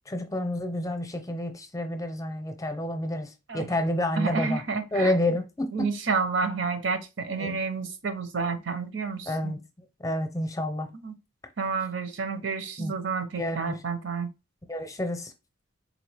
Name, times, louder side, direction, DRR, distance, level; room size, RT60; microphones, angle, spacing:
voice 1, 0.1-4.6 4.9-5.9 7.4-7.6 9.3-9.6 10.0-10.9 12.8-12.9 13.4-13.8 14.7-15.3, left 1 dB, 15° left, 0.7 m, -29 dB
voice 2, 4.2-5.1 5.7-9.5 11.0-11.1 11.6-14.3, right 5 dB, 75° right, 0.8 m, -30 dB
4.1 x 2.9 x 3.3 m
head